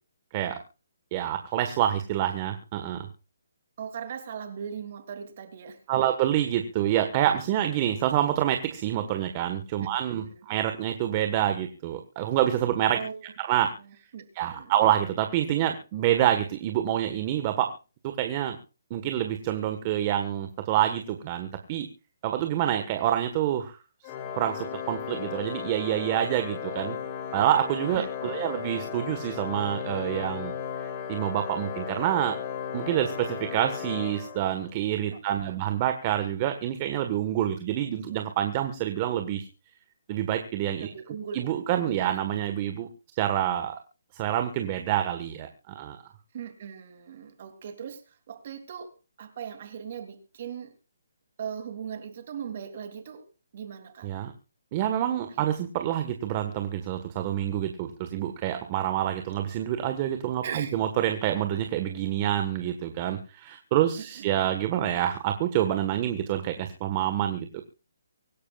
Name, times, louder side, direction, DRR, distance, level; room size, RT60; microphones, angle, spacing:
voice 1, 1.1-3.1 5.9-13.0 13.4-13.7 14.3-17.7 18.0-18.6 18.9-21.9 22.2-23.8 24.4-27.0 27.3-30.5 30.8-32.4 32.7-39.5 40.1-40.9 41.3-42.9 43.1-43.8 44.1-46.0 54.0-54.3 54.7-67.6, right 11 dB, 25° right, 7 dB, 1.5 m, -27 dB
voice 2, 3.8-6.0 9.8-10.5 12.9-13.3 13.8-14.7 27.9-28.5 35.1-35.6 40.8-41.5 41.8-42.2 46.3-50.7 51.4-53.3 53.5-54.1 55.3-55.5 60.4-60.8 64.0-64.5, right 7 dB, 40° right, 9 dB, 3.1 m, -39 dB
Organ, 24.0-34.9, left 8 dB, 25° left, 2.2 m, -36 dB
24.5 x 11.0 x 2.5 m, 0.33 s
hypercardioid pair, 165°, 0 cm